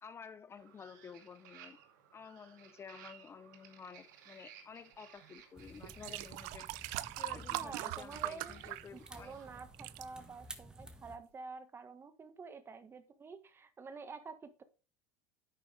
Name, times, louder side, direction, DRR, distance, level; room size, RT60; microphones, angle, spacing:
voice 1, 0.0-1.8 2.1-6.7 7.2-9.4, left 6 dB, 25° left, 0.8 m, -52 dB
sound 1, 0.5-10.5, right 8 dB, 85° right, 2.4 m, -59 dB
sound 2, 5.2-5.3 5.8-9.3 9.6-10.1 10.8-10.9, right 18 dB, 70° right, 0.6 m, -41 dB
sound 3, 5.5-11.2, right 1 dB, 10° right, 1.6 m, -53 dB
voice 2, 7.5-8.5 8.9-14.6, right 4 dB, 25° right, 1.5 m, -49 dB
10.5 x 8.7 x 3.4 m
supercardioid pair, 110°, 10 cm